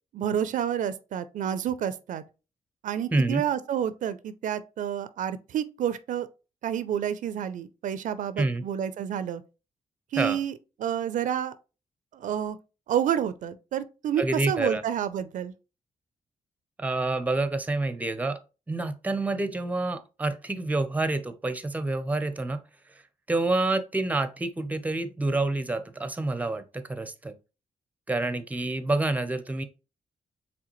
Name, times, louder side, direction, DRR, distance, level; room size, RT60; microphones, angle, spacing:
voice 1, 0.1-2.2 2.8-6.3 6.6-9.4 10.1-11.6 12.1-12.6 12.9-15.5, right 9 dB, 75° right, 0.4 m, -29 dB
voice 2, 3.1-3.4 8.4-8.6 10.2-10.4 14.2-14.8 16.8-18.4 18.7-22.6 23.3-27.3 28.1-29.6, right 2 dB, 10° right, 0.5 m, -28 dB
4.9 x 3.4 x 3.0 m
cardioid pair, 90°, 13 cm